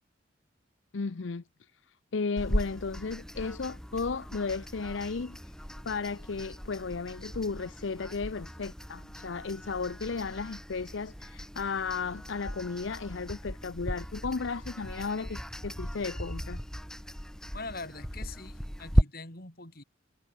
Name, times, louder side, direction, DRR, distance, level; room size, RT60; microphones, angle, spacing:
voice 1, 0.9-1.4 2.1-5.4 5.8-16.6, left 4 dB, 75° left, 0.6 m, -34 dB
sound 1, 2.4-19.0, equal, 5° left, 2.3 m, -36 dB
voice 2, 17.5-19.8, left 3 dB, 50° left, 4.6 m, -43 dB
head